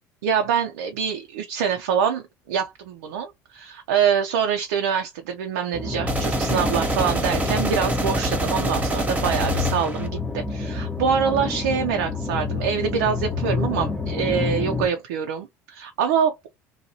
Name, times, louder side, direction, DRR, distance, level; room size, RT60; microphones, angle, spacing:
voice 1, 0.2-16.5, right 7 dB, 75° right, 0.4 m, -25 dB
sound 1, 5.7-14.9, left 4 dB, 15° left, 0.7 m, -28 dB
sound 2, 6.1-10.1, right 1 dB, 15° right, 0.9 m, -26 dB
2.7 x 2.2 x 2.7 m
hypercardioid pair, 65°, 9 cm